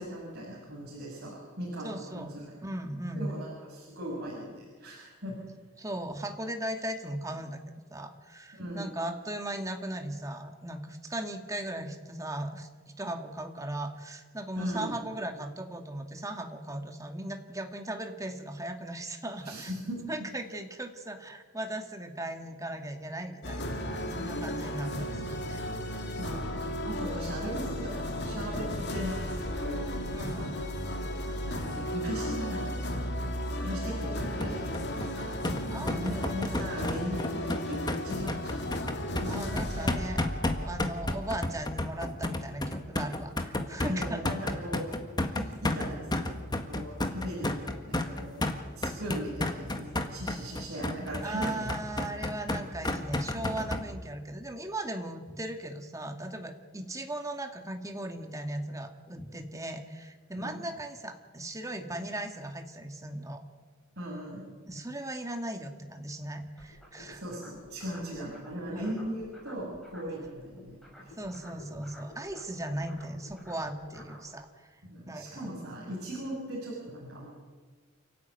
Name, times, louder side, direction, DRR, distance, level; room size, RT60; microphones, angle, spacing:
voice 1, 0.0-2.5 3.1-5.4 8.5-8.9 14.6-14.9 19.4-20.3 26.2-30.6 31.4-33.3 33.6-38.7 39.2-40.1 43.8-44.8 45.3-51.7 56.7-56.8 60.3-60.6 64.0-64.4 67.1-71.1 74.8-77.3, equal, 50° right, -5 dB, 6.4 m, -39 dB
voice 2, 1.8-2.3 2.6-3.4 5.8-7.6 7.9-12.7 13.0-19.7 20.1-25.6 27.2-27.3 30.1-30.6 35.7-36.3 39.3-40.2 40.6-44.2 51.2-63.4 64.7-67.2 68.7-69.0 71.2-74.8 75.1-75.5, right 1 dB, 15° right, 5 dB, 1.8 m, -38 dB
sound 1, 23.4-42.1, equal, 55° left, 2.5 m, -35 dB
sound 2, 34.4-53.8, left 1 dB, 20° left, 1.6 m, -32 dB
sound 3, 66.6-70.3 70.5-74.3, left 1 dB, ahead, 7.2 m, -51 dB
29.0 x 13.5 x 9.4 m, 1.5 s
head